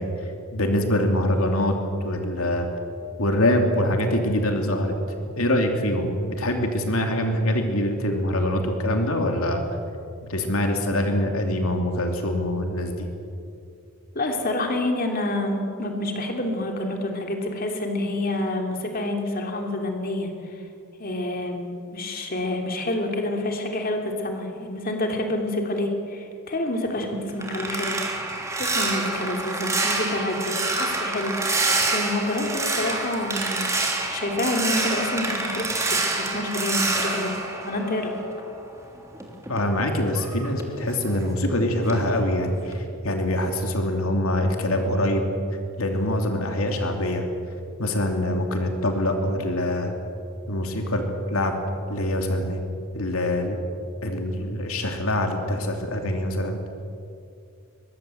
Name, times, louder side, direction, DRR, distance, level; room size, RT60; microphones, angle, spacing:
voice 1, 0.0-2.7 3.2-5.0 5.4-9.6 10.3-13.1 39.5-45.2 45.8-47.2 47.8-50.0 50.5-51.0 51.3-51.5 51.9-52.6 52.9-53.6 54.0-56.6, left 1 dB, 75° left, 3 dB, 2.9 m, -24 dB
voice 2, 14.1-20.6 21.0-28.0 28.6-31.4 31.9-33.8 34.1-37.3 37.6-38.2, left 1 dB, 40° left, 2 dB, 3.0 m, -28 dB
sound 1, 26.9-38.5 38.9-41.5 41.9-42.2 42.6-42.8, right 3 dB, 15° right, 3.2 m, -27 dB
23.5 x 22.5 x 7.9 m, 2.5 s
head